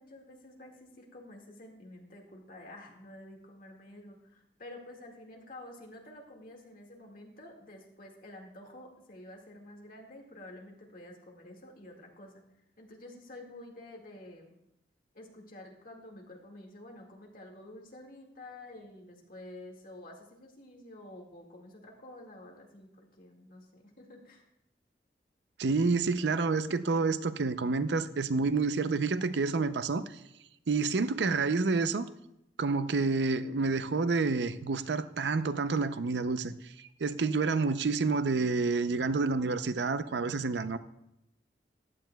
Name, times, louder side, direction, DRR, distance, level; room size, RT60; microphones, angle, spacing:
voice 1, 0.0-12.4 12.8-14.5 15.1-24.5, left 1 dB, 55° left, 2.0 m, -50 dB
voice 2, 25.6-30.2 30.7-32.0 32.6-40.8, right 4 dB, 75° right, 0.5 m, -29 dB
15.0 x 11.5 x 2.3 m
head